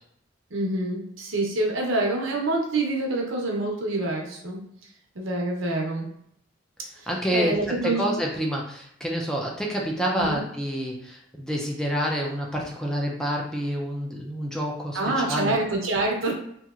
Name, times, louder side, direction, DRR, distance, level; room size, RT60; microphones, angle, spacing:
voice 1, 0.5-4.6 5.2-6.1 7.0-8.0 10.2-10.4 14.9-16.3, right 2 dB, 80° right, 0 dB, 0.7 m, -26 dB
voice 2, 7.1-7.6 7.8-15.6, equal, 5° left, -1 dB, 0.4 m, -28 dB
2.8 x 2.8 x 2.4 m, 0.72 s
head